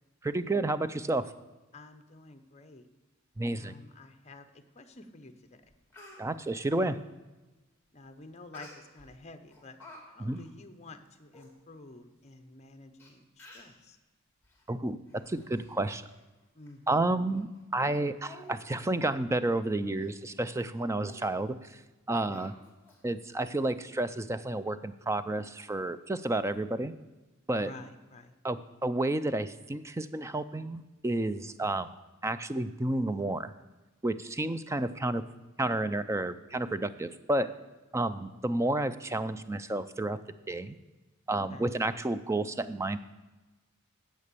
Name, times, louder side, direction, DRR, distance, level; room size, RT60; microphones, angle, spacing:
voice 1, 0.2-1.3 3.4-3.7 6.2-7.0 10.2-10.4 14.7-16.0 16.9-21.8 22.1-22.5 23.0-26.9 27.5-27.7 28.4-31.9 32.2-33.5 34.0-35.2 35.6-37.5 37.9-40.2 40.5-40.8 41.3-43.0, right 2 dB, 15° right, 13 dB, 0.4 m, -31 dB
voice 2, 1.7-2.9 3.5-5.6 6.7-7.1 7.9-9.8 10.1-14.0 16.5-17.1 22.1-22.5 27.6-28.3 31.6-31.7 41.5-41.7, left 2 dB, 30° left, 8 dB, 0.8 m, -50 dB
Speech, 5.2-5.3 5.7-6.2 8.5-9.1 9.5-10.0 10.3-10.5 11.0-11.1 11.3-11.5 12.3-12.4 13.0-13.1 13.4-13.8 14.4-14.6 15.1-15.7 16.0-16.2 16.7-16.8 17.3-17.4 17.8-17.9 18.2-18.6 18.9-19.1 19.4-19.6 20.0-20.1 20.5-20.7 21.1-21.3 22.3-23.0 23.4-23.5, left 2 dB, 10° left, 2.8 m, -52 dB
9.7 x 7.5 x 6.8 m, 1.1 s
head